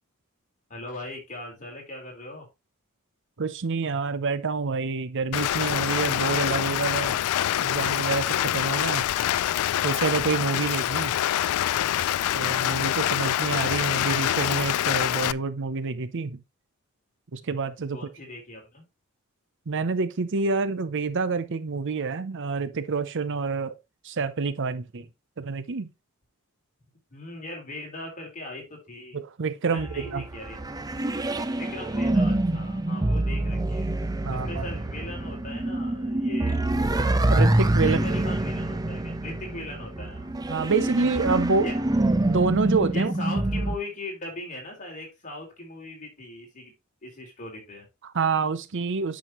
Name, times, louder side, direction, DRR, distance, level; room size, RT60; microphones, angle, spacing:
voice 1, 0.7-2.5 17.9-18.8 27.1-29.2 29.7-30.9 31.6-33.9 34.3-36.6 37.8-40.4 41.6-41.7 42.9-46.7 47.0-47.9, left 2 dB, 35° left, 4.1 m, -39 dB
voice 2, 3.4-7.2 7.6-9.0 9.8-11.1 12.3-16.4 17.3-18.0 19.7-23.8 24.0-25.0 25.4-25.9 29.1-30.2 34.2-34.7 37.3-38.0 40.5-41.7 42.2-43.1 48.0-49.2, right 4 dB, 55° right, 0.7 m, -27 dB
Rain, 5.3-15.3, left 12 dB, 85° left, 0.3 m, -25 dB
sound 1, 29.8-43.8, right 1 dB, 15° right, 0.5 m, -26 dB
9.1 x 6.2 x 3.0 m
head